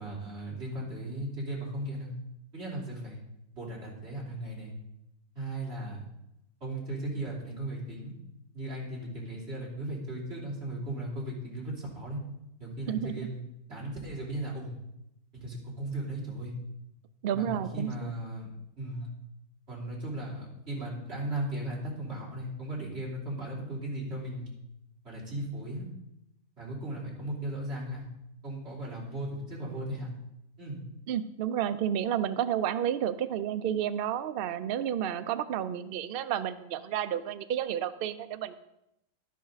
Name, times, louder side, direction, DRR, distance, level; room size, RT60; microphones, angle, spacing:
voice 1, 0.0-2.1 2.5-3.2 3.5-4.7 5.4-6.0 6.6-8.1 8.5-12.2 12.6-13.4 13.7-14.7 15.3-16.5 17.3-18.5 18.8-19.1 19.7-24.5 25.0-25.9 26.6-28.1 28.4-30.1 30.6-30.8, right 1 dB, 45° right, -5 dB, 3.7 m, -36 dB
voice 2, 17.2-18.1 31.1-38.5, right 9 dB, 75° right, 12 dB, 0.5 m, -31 dB
12.0 x 10.0 x 4.0 m, 0.85 s
omnidirectional pair, 1.5 m